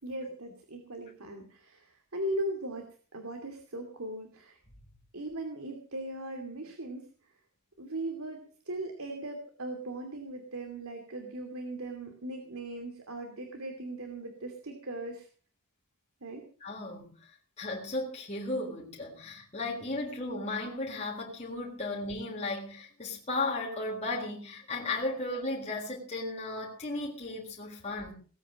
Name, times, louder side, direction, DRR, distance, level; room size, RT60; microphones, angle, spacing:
voice 1, 0.0-4.6 5.1-7.1 7.8-15.3 16.2-16.4, right 1 dB, 80° right, 4 dB, 2.7 m, -38 dB
voice 2, 16.6-17.1 17.6-28.1, left 2 dB, 30° left, -2 dB, 3.9 m, -35 dB
19.5 x 9.1 x 6.4 m, 0.41 s
head